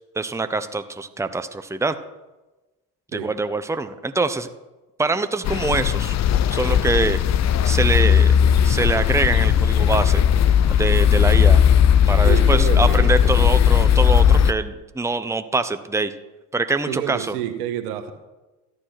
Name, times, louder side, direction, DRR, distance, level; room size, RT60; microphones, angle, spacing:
voice 1, 0.2-1.9 3.1-4.5 5.0-6.2 6.5-7.2 7.6-8.3 8.6-10.2 10.7-11.6 12.1-16.1 16.5-17.3, right 3 dB, 5° right, 10 dB, 1.0 m, -24 dB
sound 1, 5.4-14.5, left 9 dB, 35° left, 0.7 m, -17 dB
voice 2, 12.2-13.1 16.9-18.1, right 11 dB, 75° right, 9 dB, 1.6 m, -28 dB
14.0 x 10.0 x 6.0 m, 1.1 s
hypercardioid pair, 60°, 46 cm